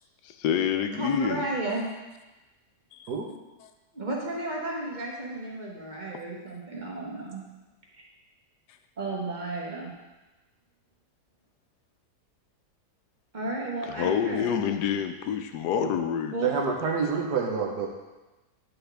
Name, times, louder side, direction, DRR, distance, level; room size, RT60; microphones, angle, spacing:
voice 1, 0.2-1.5 2.9-3.1 13.9-16.5, left 8 dB, 85° left, 7 dB, 1.2 m, -28 dB
voice 2, 0.9-1.9 3.9-7.4 9.0-9.9 13.3-14.6 16.3-16.5, right 2 dB, 30° right, -3 dB, 1.2 m, -33 dB
voice 3, 16.4-17.9, right 5 dB, 80° right, 1 dB, 1.5 m, -28 dB
9.4 x 4.5 x 3.4 m, 1.1 s
omnidirectional pair, 1.7 m